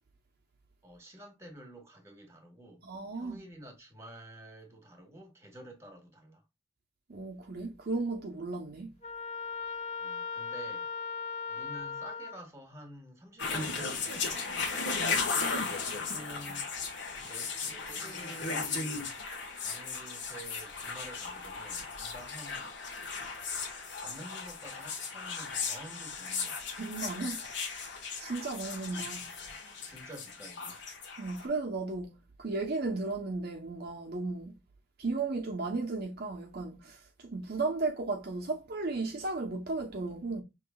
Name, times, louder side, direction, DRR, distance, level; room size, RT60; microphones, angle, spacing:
voice 1, 0.8-2.8 3.1-6.4 10.0-10.9 11.5-15.1 15.8-16.7 17.2-19.1 19.5-22.6 24.0-26.8 28.9-29.1 29.9-30.8, right 1 dB, 15° right, 1.5 m, -50 dB
voice 2, 2.8-3.4 7.1-8.9 16.1-16.2 26.8-27.5 28.2-29.3 31.2-34.6 35.0-40.4, right 3 dB, 55° right, 0.8 m, -35 dB
Trumpet, 9.0-12.4, left 5 dB, 35° left, 1.5 m, -38 dB
sound 1, 13.4-31.5, left 4 dB, 65° left, 1.3 m, -36 dB
5.7 x 3.1 x 2.3 m
head